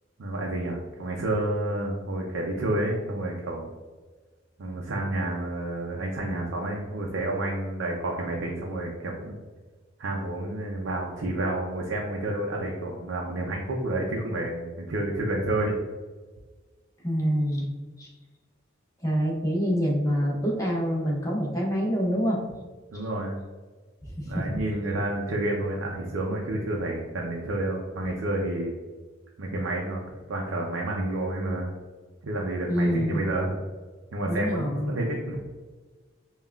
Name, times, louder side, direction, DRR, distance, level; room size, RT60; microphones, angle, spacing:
voice 1, 0.2-3.7 4.6-9.3 10.0-15.7 22.9-23.4 24.2-28.7 29.4-31.7 32.2-33.5 34.1-35.4, right 1 dB, 75° right, -1 dB, 0.5 m, -29 dB
voice 2, 17.0-17.7 18.0-18.1 19.0-22.4 24.1-24.6 32.7-33.2 34.3-34.9, equal, 15° left, -2 dB, 0.8 m, -26 dB
5.4 x 2.3 x 2.3 m, 1.3 s
head